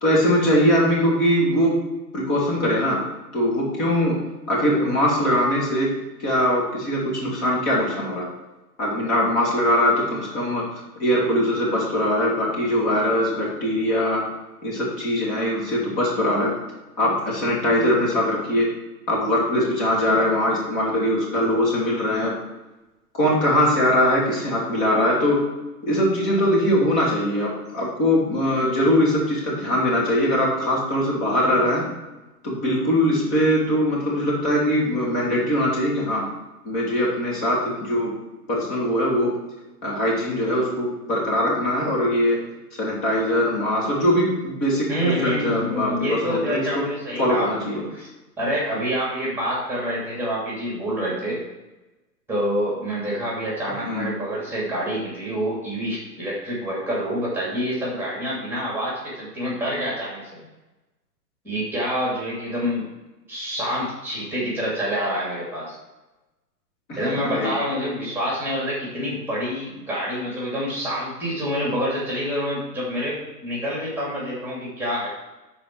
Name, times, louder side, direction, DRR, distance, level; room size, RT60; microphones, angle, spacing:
voice 1, 0.0-1.9 2.1-3.0 3.3-8.2 8.8-10.7 11.0-14.3 14.6-16.5 17.0-18.8 19.1-22.3 23.1-25.5 25.8-31.8 32.4-36.3 36.6-38.2 38.5-39.4 39.8-42.5 42.8-44.9 45.2-46.9 47.2-47.8 53.8-54.1 66.9-67.5, equal, 35° left, -5 dB, 3.1 m, -21 dB
voice 2, 44.9-48.1 48.4-51.4 52.3-60.5 61.4-62.9 63.3-65.7 67.0-75.1, equal, 5° right, -5 dB, 2.7 m, -27 dB
12.0 x 4.4 x 4.7 m, 1.1 s
figure-of-eight pair, 120°, 49 cm